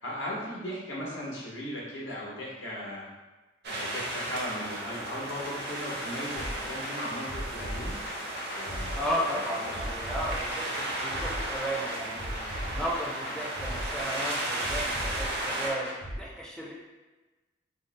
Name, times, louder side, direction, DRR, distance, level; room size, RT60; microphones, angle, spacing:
voice 1, 0.0-3.1 3.7-8.0 8.5-9.3 9.6-9.7, equal, 80° left, -5 dB, 0.9 m, -37 dB
sound 1, 3.6-15.7, right 1 dB, 60° right, 0.5 m, -35 dB
sound 2, 6.4-16.2, equal, 55° left, 0.7 m, -38 dB
voice 2, 9.0-12.4 12.7-16.7, equal, 5° left, -5 dB, 0.4 m, -34 dB
2.6 x 2.0 x 3.8 m, 1.2 s
head